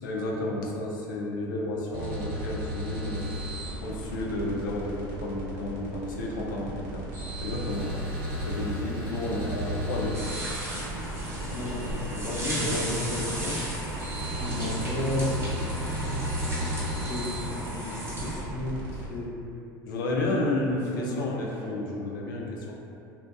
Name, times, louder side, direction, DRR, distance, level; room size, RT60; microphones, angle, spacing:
voice 1, 0.0-3.3 3.8-7.0 7.4-8.0 8.5-10.1 12.1-13.6 19.9-22.7, left 2 dB, 80° left, -2 dB, 0.4 m, -32 dB
sound 1, 1.9-19.1, equal, 60° right, 0.7 m, -35 dB
sound 2, 7.7-16.9, right 1 dB, 80° right, 1.0 m, -49 dB
sound 3, 10.1-18.4, right 1 dB, 25° right, 0.7 m, -35 dB
voice 2, 11.4-11.8 12.6-13.5 14.3-16.3 17.1-17.9 18.2-19.3 20.2-20.4 20.9-21.2, left 1 dB, 25° left, -8 dB, 0.6 m, -34 dB
2.6 x 2.1 x 2.3 m, 2.7 s
hypercardioid pair, 85°, 11 cm